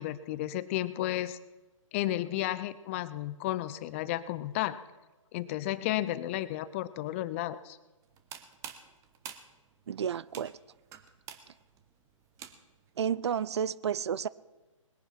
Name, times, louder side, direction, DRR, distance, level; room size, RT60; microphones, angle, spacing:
voice 1, 0.0-1.4 1.9-4.8 5.3-7.8, left 14 dB, 25° left, 0.5 m, -33 dB
sound 1, 8.0-12.9, right 9 dB, 20° right, 1.0 m, -48 dB
voice 2, 9.9-10.5 13.0-14.3, right 8 dB, 55° right, 0.5 m, -31 dB
20.5 x 9.9 x 5.8 m
figure-of-eight pair, 135°, 17 cm